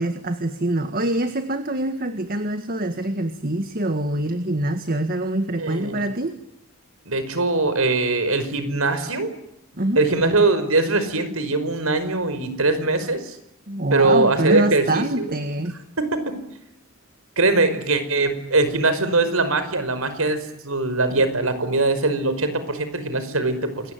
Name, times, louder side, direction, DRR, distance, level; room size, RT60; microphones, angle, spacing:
voice 1, 0.0-6.4 9.8-10.1 13.7-15.8, right 1 dB, 45° right, 8 dB, 1.8 m, -25 dB
voice 2, 5.6-6.0 7.1-9.3 10.0-13.4 13.9-15.0 16.0-16.4 17.4-23.9, right 3 dB, 85° right, 11 dB, 5.3 m, -21 dB
28.5 x 21.5 x 9.3 m, 0.81 s
head